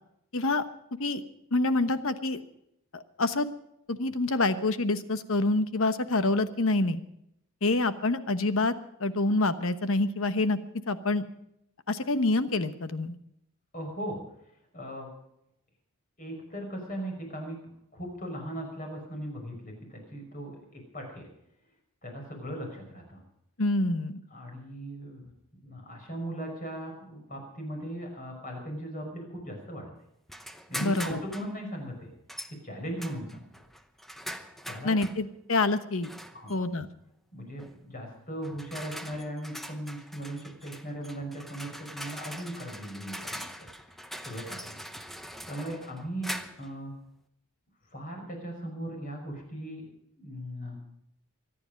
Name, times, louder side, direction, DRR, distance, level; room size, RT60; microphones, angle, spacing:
voice 1, 0.3-0.6 1.0-1.2 1.5-2.4 2.9-3.5 3.9-7.0 7.6-8.7 9.0-10.6 10.9-11.2 11.9-13.2 23.6-24.2 30.8-31.2 34.8-36.1 36.5-36.9, left 2 dB, 70° left, 11 dB, 1.1 m, -26 dB
voice 2, 13.7-14.2 14.7-15.1 16.2-17.6 17.9-21.3 22.0-23.2 24.3-25.3 25.6-29.8 30.7-32.1 32.5-33.5 34.7-34.9 36.3-36.6 37.3-43.5 44.2-44.8 45.5-46.9 47.9-49.8 50.1-50.8, right 1 dB, 40° left, 2 dB, 5.7 m, -38 dB
sound 1, 30.3-31.5 32.3-32.6 33.0-35.2 36.0-36.6 37.6-37.8 38.4-46.7, equal, ahead, 0.8 m, -42 dB
25.0 x 9.9 x 5.2 m, 0.77 s
head